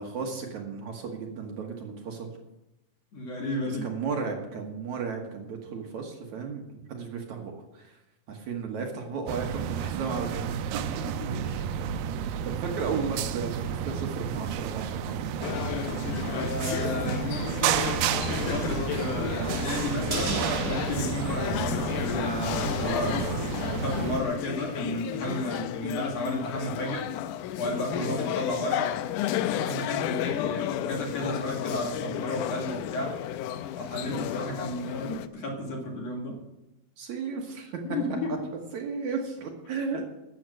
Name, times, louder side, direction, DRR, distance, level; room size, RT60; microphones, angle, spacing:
voice 1, 0.0-2.3 3.7-8.0 8.3-10.8 11.4-11.8 12.4-15.3 27.9-28.2 37.0-37.8 38.7-40.0, right 5 dB, 60° right, 2 dB, 2.5 m, -34 dB
voice 2, 3.1-3.9 11.2-11.4 16.3-23.3 23.6-27.1 27.6-29.0 29.5-33.1 33.8-36.4 37.8-38.3, left 1 dB, 50° left, 0 dB, 3.0 m, -33 dB
sound 1, 9.3-24.2, right 8 dB, 90° right, 2.4 m, -31 dB
sound 2, 15.4-35.3, left 11 dB, 80° left, 1.9 m, -33 dB
sound 3, 20.1-22.5 22.8-22.9, right 3 dB, 45° right, 1.1 m, -36 dB
12.5 x 8.8 x 6.4 m, 0.93 s
omnidirectional pair, 4.1 m